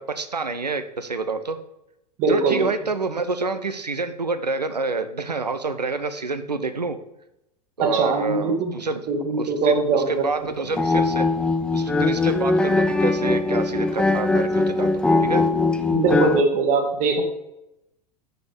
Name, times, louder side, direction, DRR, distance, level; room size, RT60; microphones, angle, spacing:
voice 1, 0.0-1.6 2.3-7.0 7.8-9.0 9.3-11.3 11.7-15.4, right 4 dB, 85° right, 10 dB, 0.6 m, -28 dB
voice 2, 2.2-2.7 7.8-8.7 9.1-10.2 15.9-17.2, right 3 dB, 40° right, 4 dB, 1.4 m, -21 dB
sound 1, 10.7-16.4, left 3 dB, 5° left, 0.3 m, -21 dB
6.0 x 5.2 x 4.8 m, 0.87 s
figure-of-eight pair, 85°, 20 cm